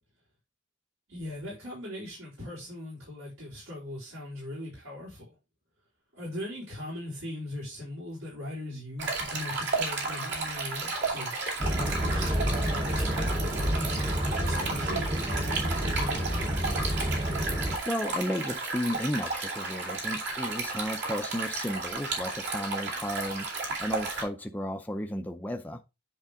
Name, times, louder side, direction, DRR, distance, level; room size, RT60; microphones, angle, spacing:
voice 1, 1.1-5.3 6.1-16.5, left 1 dB, 75° right, 4.8 m, -40 dB
Stream, 9.0-24.2, right 3 dB, 60° right, 2.5 m, -33 dB
sound 1, 11.6-17.8, equal, 25° right, 0.9 m, -29 dB
voice 2, 17.9-25.8, equal, 10° left, 0.5 m, -33 dB
9.9 x 3.7 x 3.7 m
head